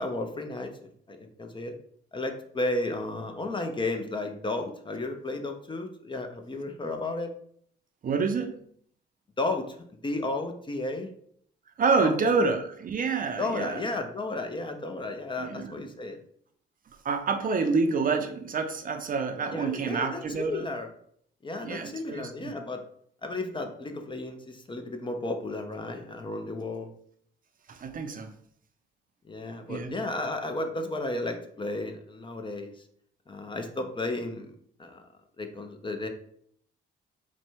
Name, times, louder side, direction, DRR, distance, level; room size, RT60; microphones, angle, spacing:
voice 1, 0.0-1.8 2.1-7.3 9.4-9.8 10.0-11.1 12.0-12.5 13.4-16.2 19.5-20.9 21.4-22.8 23.2-26.9 29.3-32.7 33.3-34.5 34.8-35.0 35.4-36.1, left 2 dB, 25° left, 5 dB, 0.6 m, -33 dB
voice 2, 8.0-8.6 11.8-13.8 15.4-15.9 17.0-20.7 21.6-22.5 27.7-28.3 29.7-29.9, right 4 dB, 45° right, 6 dB, 0.6 m, -28 dB
4.2 x 2.2 x 4.4 m, 0.63 s
cardioid pair, 90°, 20 cm